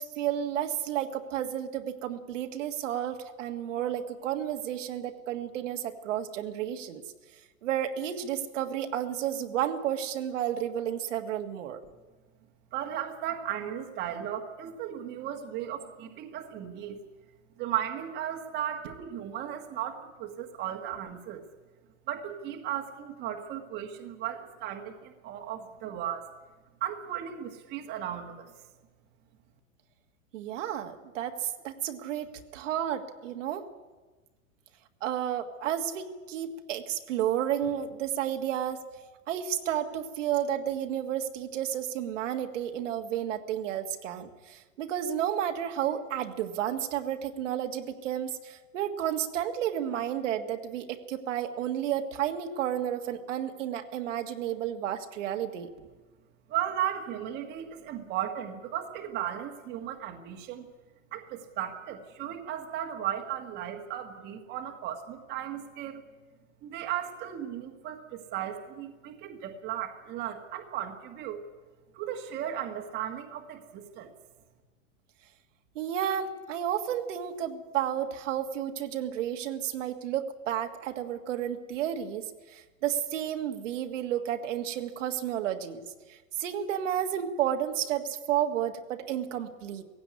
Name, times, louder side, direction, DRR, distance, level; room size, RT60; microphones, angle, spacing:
voice 1, 0.0-7.0 7.6-11.8 30.3-33.6 35.0-38.8 39.3-55.7 75.7-89.8, right 10 dB, 60° right, 5 dB, 1.7 m, -32 dB
voice 2, 12.7-17.0 17.6-21.5 22.1-26.3 26.8-28.5 56.5-60.7 61.1-66.0 66.6-71.4 71.9-74.1, right 10 dB, 25° right, 3 dB, 1.6 m, -36 dB
18.0 x 16.0 x 9.6 m, 1.3 s
supercardioid pair, 165°, 42 cm